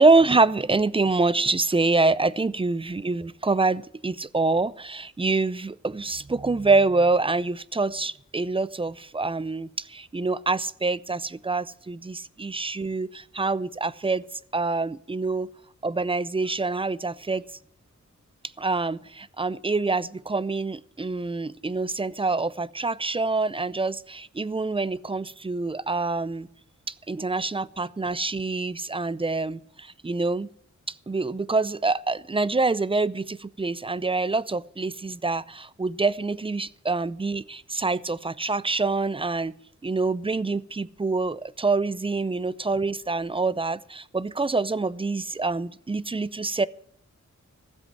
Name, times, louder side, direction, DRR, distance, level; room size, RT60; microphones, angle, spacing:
voice 1, 0.0-14.2 14.5-15.5 15.8-17.4 18.6-26.5 26.9-30.5 31.1-39.5 39.8-46.7, right 3 dB, 20° right, 0.4 m, -26 dB
15.0 x 7.8 x 7.4 m
wide cardioid pair, 115°, 30 cm